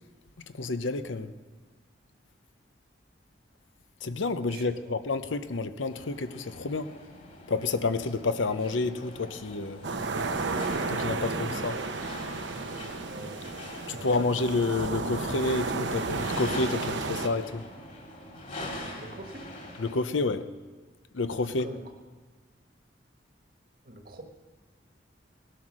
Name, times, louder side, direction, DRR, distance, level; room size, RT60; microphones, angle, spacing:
voice 1, 0.6-1.3 4.0-6.9 7.5-9.9 10.9-11.8 13.9-17.6 19.8-20.5 21.1-21.7, left 3 dB, 85° left, 0.8 m, -29 dB
voice 2, 4.5-4.9 11.2-11.8 13.0-13.4 13.9-14.1 19.0-19.5 21.6-21.8 23.8-24.2, right 1 dB, 50° right, 1.6 m, -44 dB
sound 1, 5.9-19.9, left 1 dB, 40° left, 2.5 m, -44 dB
sound 2, 9.8-17.3, right 3 dB, 75° right, 0.9 m, -32 dB
18.0 x 11.5 x 6.2 m
head